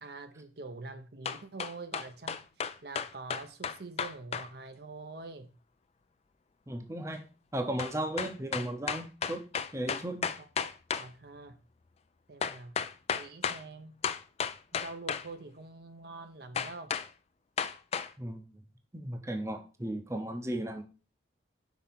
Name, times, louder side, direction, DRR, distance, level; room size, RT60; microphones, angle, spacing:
voice 1, 0.0-5.6 10.6-11.6 12.3-12.8 13.1-14.0 14.7-17.0, right 3 dB, 55° right, 0.7 m, -45 dB
sound 1, 1.3-4.5 7.8-11.1 12.4-13.6 14.0-15.3 16.5-17.1 17.6-18.1, left 6 dB, 35° left, 0.4 m, -33 dB
voice 2, 6.7-7.2 7.5-9.4 9.7-10.3 18.2-18.4 18.9-20.8, right 1 dB, 15° right, 0.7 m, -35 dB
5.9 x 4.1 x 5.7 m
head